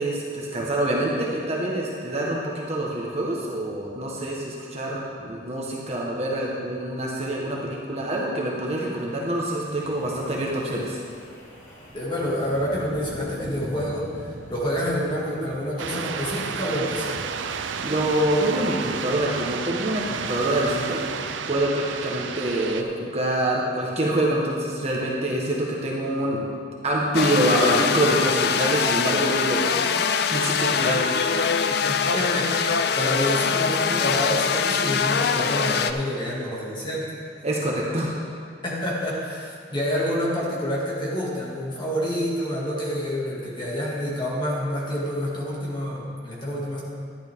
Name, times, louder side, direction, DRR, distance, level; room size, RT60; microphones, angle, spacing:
voice 1, 0.0-11.0 17.5-21.0 21.5-26.4 26.8-31.2 37.4-38.1, right 1 dB, 30° right, -3 dB, 1.3 m, -26 dB
Wind, 9.1-19.4, equal, 85° left, 3.0 m, -43 dB
voice 2, 11.9-17.2 31.9-37.3 38.6-46.8, equal, 25° left, -5 dB, 2.1 m, -28 dB
sound 1, 15.8-22.8, right 6 dB, 75° right, 0.5 m, -31 dB
sound 2, 27.1-35.9, left 6 dB, 55° left, 0.4 m, -23 dB
11.5 x 11.0 x 3.6 m, 2.1 s
head